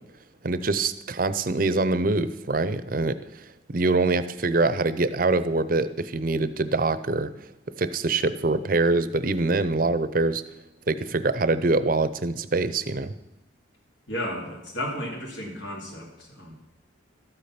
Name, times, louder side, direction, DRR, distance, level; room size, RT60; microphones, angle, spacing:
voice 1, 0.4-7.3 7.8-10.4 10.9-13.1, right 3 dB, 45° right, 14 dB, 0.6 m, -24 dB
voice 2, 14.1-16.5, left 1 dB, 75° left, -2 dB, 2.7 m, -33 dB
13.0 x 8.6 x 5.9 m, 0.91 s
head